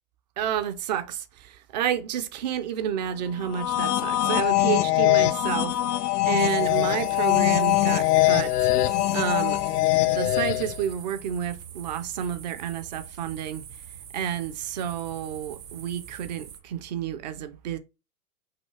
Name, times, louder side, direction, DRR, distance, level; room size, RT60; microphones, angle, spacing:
voice 1, 0.4-8.7 9.1-9.6 10.0-13.6 14.1-17.8, right 9 dB, 30° right, 0.4 m, -30 dB
sound 1, 3.4-10.8, left 16 dB, 85° left, 0.5 m, -22 dB
sound 2, 6.4-16.6, right 8 dB, 85° right, 1.3 m, -44 dB
5.6 x 2.7 x 3.1 m
hypercardioid pair, 125°, 46 cm